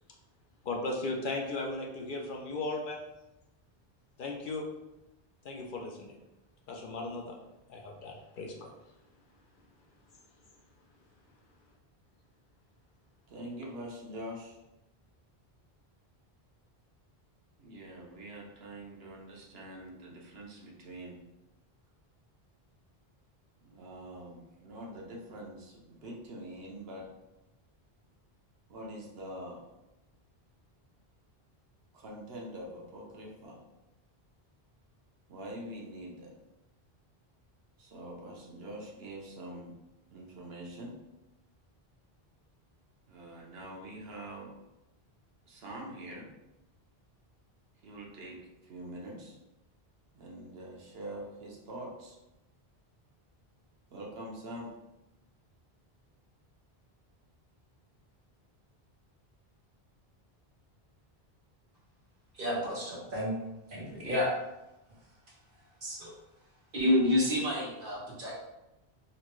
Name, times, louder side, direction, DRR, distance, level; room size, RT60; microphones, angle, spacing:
voice 1, 0.6-3.0 4.2-4.7 5.4-6.2 6.7-7.4 7.7-8.7, left 2 dB, 60° left, 0 dB, 0.6 m, -36 dB
voice 2, 13.3-14.6 17.6-21.2 23.6-27.1 28.7-29.6 31.9-33.6 35.3-36.3 37.8-39.7 40.1-41.0 43.1-44.5 45.5-46.3 47.8-48.4 48.6-49.4 50.1-52.2 53.9-54.7, right 1 dB, 75° right, -2 dB, 1.0 m, -44 dB
voice 3, 62.3-63.4 63.7-64.3 65.8-66.1 66.7-68.3, left 1 dB, 55° right, -5 dB, 1.2 m, -29 dB
4.1 x 2.1 x 3.0 m, 0.95 s
omnidirectional pair, 1.0 m